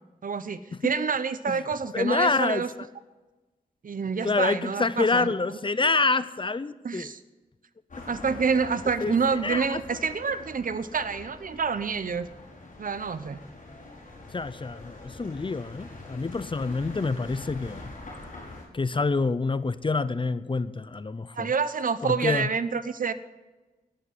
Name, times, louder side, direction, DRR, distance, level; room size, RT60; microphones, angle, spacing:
voice 1, 0.2-2.7 3.8-5.3 6.8-7.2 8.1-12.3 12.8-13.4 21.4-23.1, right 5 dB, 65° right, 14 dB, 0.9 m, -28 dB
voice 2, 1.9-2.7 4.2-7.1 9.0-9.8 14.3-17.9 18.7-21.5 22.0-22.5, left 3 dB, 35° left, 16 dB, 0.7 m, -27 dB
sound 1, 7.9-18.6, left 2 dB, 60° left, 5.3 m, -44 dB
11.5 x 10.5 x 9.6 m, 1.2 s
wide cardioid pair, 85°, 15 cm